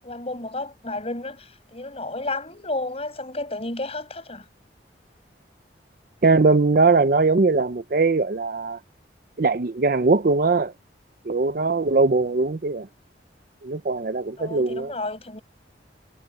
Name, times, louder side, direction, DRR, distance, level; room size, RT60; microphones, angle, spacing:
voice 1, 0.0-4.4 14.4-15.4, left 2 dB, 35° left, 5.9 m, -32 dB
voice 2, 6.2-8.8 9.4-10.7 11.3-12.9 13.6-14.9, right 3 dB, 50° right, 0.6 m, -20 dB
head